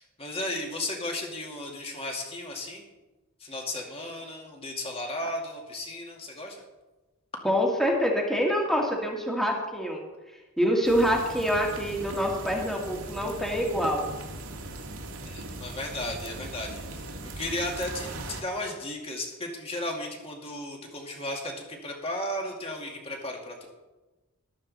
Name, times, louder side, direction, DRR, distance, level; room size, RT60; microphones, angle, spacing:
voice 1, 0.0-2.8 3.4-6.6 15.2-23.7, left 1 dB, 25° left, 1 dB, 2.3 m, -35 dB
voice 2, 7.4-10.0 10.6-14.1, equal, ahead, -1 dB, 2.0 m, -26 dB
sound 1, 10.8-18.4, right 2 dB, 70° right, 1.9 m, -39 dB
14.0 x 12.5 x 4.2 m, 1.1 s
head